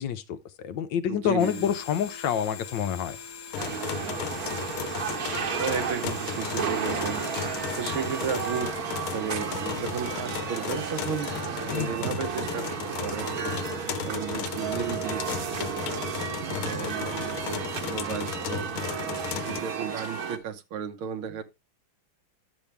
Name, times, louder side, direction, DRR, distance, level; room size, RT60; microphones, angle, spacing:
voice 1, 0.0-3.2 11.7-11.9, left 9 dB, 70° left, 1.3 m, -28 dB
voice 2, 1.1-1.7 5.5-7.2 7.8-8.8 9.1-11.3 11.7-13.7 14.0-16.1 16.5-19.0 19.4-21.4, right 7 dB, 80° right, 1.9 m, -34 dB
sound 1, 1.4-8.6, left 5 dB, 35° left, 2.0 m, -43 dB
sound 2, 3.5-19.6, left 12 dB, 85° left, 1.6 m, -35 dB
sound 3, 3.6-20.4, right 7 dB, 50° right, 1.4 m, -33 dB
10.5 x 7.1 x 3.4 m
omnidirectional pair, 2.3 m